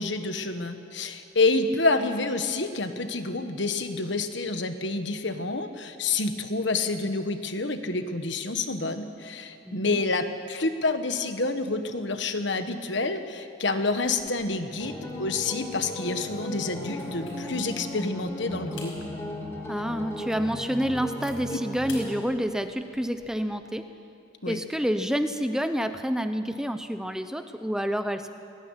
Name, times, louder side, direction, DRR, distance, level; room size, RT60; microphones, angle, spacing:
voice 1, 0.0-19.0 24.4-24.6, left 3 dB, 55° left, 8 dB, 1.4 m, -28 dB
voice 2, 9.7-10.0 19.7-23.8 24.5-28.3, equal, 5° right, 8 dB, 0.7 m, -28 dB
sound 1, 14.0-14.6 15.0-15.2 15.7-17.8 18.3-18.4 18.7-19.0 19.5-19.6 20.1-20.2 20.5-21.3 21.9-22.1 22.4-23.4, left 3 dB, 75° left, 5.4 m, -46 dB
sound 2, 14.8-22.2, left 1 dB, 10° left, 3.8 m, -36 dB
21.0 x 17.0 x 9.8 m, 2.5 s
head